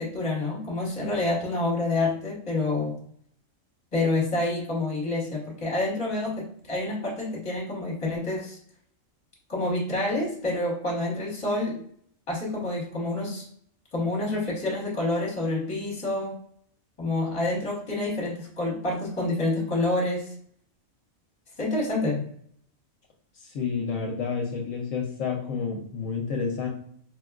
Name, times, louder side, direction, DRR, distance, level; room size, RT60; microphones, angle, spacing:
voice 1, 0.0-3.0 3.9-8.6 9.5-11.8 12.3-13.5 13.9-16.3 17.0-20.3 21.6-22.3, left 2 dB, 25° left, -3 dB, 1.1 m, -28 dB
voice 2, 23.3-26.7, left 5 dB, 75° left, 0 dB, 0.9 m, -30 dB
4.6 x 2.2 x 2.3 m, 0.63 s
omnidirectional pair, 1.4 m